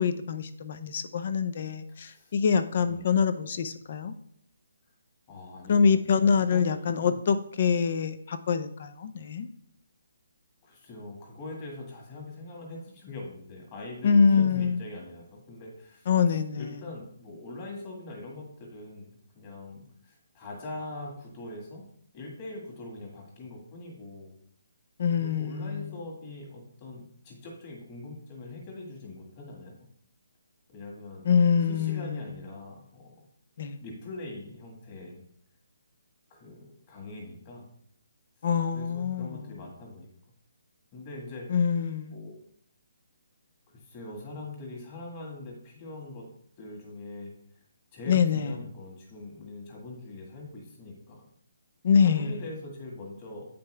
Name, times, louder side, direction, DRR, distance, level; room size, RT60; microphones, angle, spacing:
voice 1, 0.0-4.1 5.7-9.5 14.0-14.8 16.1-16.8 25.0-25.9 31.2-32.3 33.6-33.8 38.4-39.4 41.5-42.2 48.1-48.5 51.8-52.3, left 6 dB, 40° left, 11 dB, 0.5 m, -25 dB
voice 2, 2.0-2.3 2.8-3.2 5.3-5.9 6.5-7.2 10.6-16.1 16.6-19.1 19.3-21.8 22.1-24.3 25.2-29.9 30.7-31.2 31.7-33.1 33.8-35.2 36.3-37.7 38.7-40.1 40.9-41.5 42.1-42.4 43.7-46.3 46.6-47.3 47.9-51.3 52.0-53.5, left 2 dB, 25° left, -1 dB, 1.8 m, -42 dB
8.3 x 5.2 x 3.3 m, 0.67 s
hypercardioid pair, 170°, 0 cm